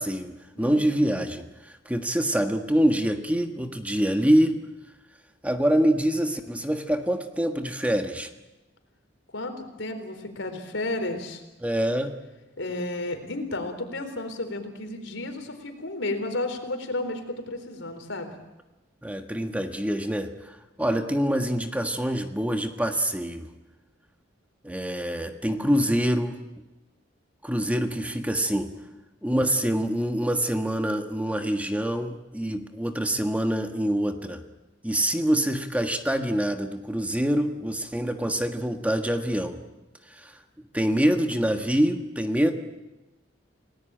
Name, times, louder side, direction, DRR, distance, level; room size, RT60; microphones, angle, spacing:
voice 1, 0.0-4.6 5.4-8.3 11.6-12.2 19.0-23.5 24.6-26.4 27.4-28.7 29.2-34.4 34.8-39.6 40.1-40.4 40.7-42.5, equal, 10° right, 6 dB, 1.5 m, -25 dB
voice 2, 0.5-1.1 9.3-11.4 12.6-18.3, left 2 dB, 85° left, 7 dB, 4.0 m, -32 dB
29.5 x 19.0 x 9.0 m, 1.1 s
head